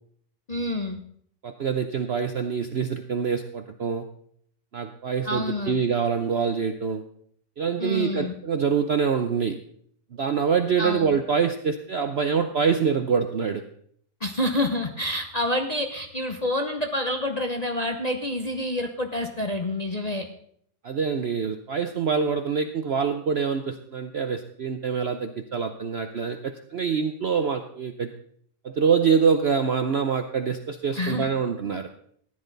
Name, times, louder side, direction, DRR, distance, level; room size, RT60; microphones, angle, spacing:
voice 1, 0.5-1.0 5.3-5.8 7.8-8.3 10.8-11.2 14.2-20.3 30.9-31.3, left 1 dB, 35° left, 3 dB, 0.7 m, -28 dB
voice 2, 1.4-4.1 4.7-7.0 7.6-9.6 10.1-13.6 20.8-28.1 28.6-31.9, right 6 dB, 60° right, 7 dB, 0.7 m, -25 dB
14.5 x 10.5 x 4.0 m, 0.64 s
omnidirectional pair, 1.8 m